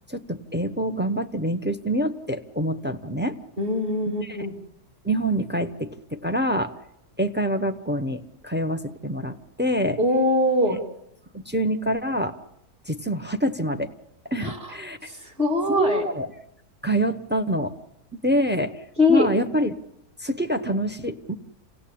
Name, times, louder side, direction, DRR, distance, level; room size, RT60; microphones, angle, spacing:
voice 1, 0.1-3.4 4.2-4.4 5.0-6.7 7.2-10.0 10.7-10.8 11.5-12.4 12.9-13.9 14.2-15.1 15.7-16.3 16.8-17.7 18.2-18.7 19.1-19.7 20.2-21.3, equal, 10° right, 8 dB, 0.7 m, -26 dB
voice 2, 3.6-4.5 10.0-10.8 14.4-14.7 15.1-16.0 19.0-19.3, left 2 dB, 30° right, 3 dB, 3.6 m, -22 dB
27.5 x 18.0 x 8.7 m, 0.81 s
omnidirectional pair, 1.9 m